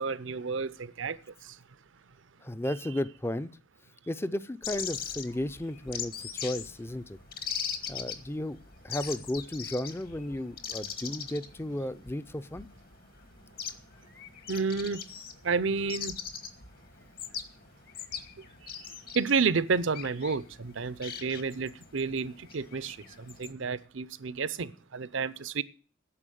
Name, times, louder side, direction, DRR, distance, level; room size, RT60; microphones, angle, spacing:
voice 1, 0.0-1.6 14.5-15.0 15.4-16.2 18.8-18.9 19.1-25.6, right 5 dB, 70° right, 0.6 m, -31 dB
voice 2, 2.4-3.5 4.1-7.2 7.9-8.6 8.8-12.7, left 1 dB, 10° left, 0.5 m, -34 dB
sound 1, 4.6-23.5, left 7 dB, 50° left, 1.3 m, -41 dB
10.0 x 7.1 x 9.2 m
head